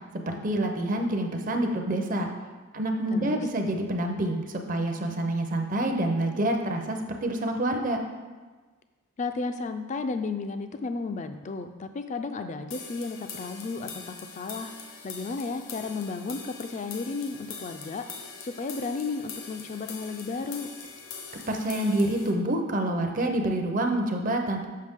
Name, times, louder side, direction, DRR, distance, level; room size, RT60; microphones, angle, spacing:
voice 1, 0.3-2.3 2.7-8.0 21.5-24.6, right 1 dB, 40° right, 4 dB, 0.6 m, -27 dB
voice 2, 3.1-3.5 9.2-14.7 15.0-18.0 18.4-20.7, left 4 dB, 35° left, 9 dB, 0.3 m, -33 dB
sound 1, 12.7-22.3, left 5 dB, 65° left, 0.8 m, -43 dB
6.6 x 5.9 x 3.6 m, 1.3 s
head